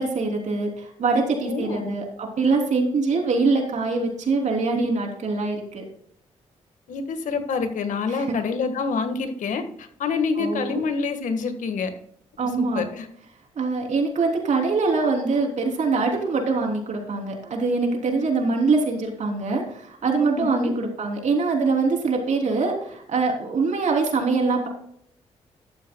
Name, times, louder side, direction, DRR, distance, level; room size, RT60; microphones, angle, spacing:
voice 1, 0.0-5.8 8.1-8.4 10.4-10.8 12.4-12.8 13.5-24.7, right 3 dB, 65° right, 1 dB, 3.3 m, -23 dB
voice 2, 1.4-1.9 6.9-11.9 12.6-13.1 20.4-20.7, left 4 dB, 75° left, 8 dB, 1.6 m, -27 dB
13.0 x 11.5 x 2.3 m, 0.66 s
supercardioid pair, 60°, 13 cm